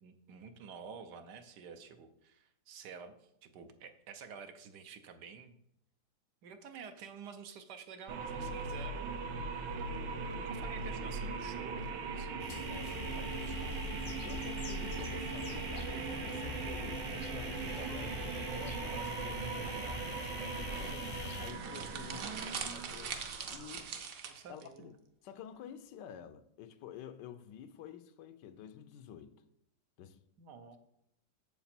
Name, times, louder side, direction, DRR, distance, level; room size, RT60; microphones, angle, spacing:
voice 1, 0.0-5.6 6.4-9.2 10.2-12.6 13.2-13.7 19.6-19.9 22.1-22.9 24.2-24.9 30.4-30.8, right 6 dB, 75° right, 1.4 m, -50 dB
sound 1, 8.1-24.0, right 5 dB, 90° right, 1.4 m, -40 dB
sound 2, 12.4-21.5, left 4 dB, 60° left, 0.4 m, -43 dB
voice 2, 12.5-20.0 20.3-22.4 22.7-23.9 24.5-24.9 25.2-29.4 30.0-30.2, left 9 dB, 80° left, 1.2 m, -50 dB
sound 3, 20.7-24.7, right 6 dB, 55° right, 1.2 m, -43 dB
7.4 x 7.0 x 4.3 m
omnidirectional pair, 1.9 m